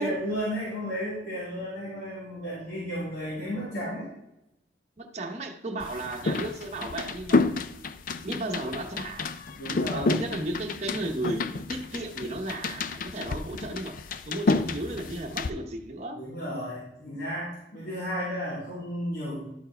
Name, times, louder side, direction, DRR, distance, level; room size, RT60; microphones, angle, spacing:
voice 1, 0.0-4.1 9.5-10.1 16.1-19.4, equal, 75° left, 3.6 m, -33 dB
voice 2, 5.0-7.5 8.2-9.3 9.9-14.0 14.3-16.2, right 1 dB, 40° right, 0.9 m, -34 dB
sound 1, 5.8-15.5, left 3 dB, 50° left, 0.4 m, -30 dB
12.0 x 4.6 x 4.4 m
head